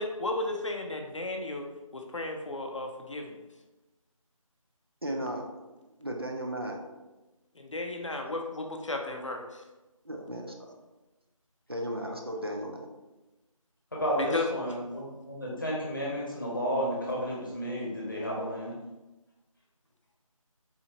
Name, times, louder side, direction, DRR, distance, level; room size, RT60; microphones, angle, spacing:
voice 1, 0.0-1.7 1.9-3.4 7.6-9.6 14.2-14.6, left 2 dB, 60° left, 3 dB, 0.5 m, -34 dB
voice 2, 5.0-5.5 6.0-6.9 10.0-10.8 11.7-12.9, right 1 dB, 45° right, 1 dB, 0.4 m, -35 dB
voice 3, 13.9-18.7, equal, 35° left, -4 dB, 0.9 m, -32 dB
4.2 x 2.8 x 2.7 m, 1.1 s
figure-of-eight pair, 175°, 18 cm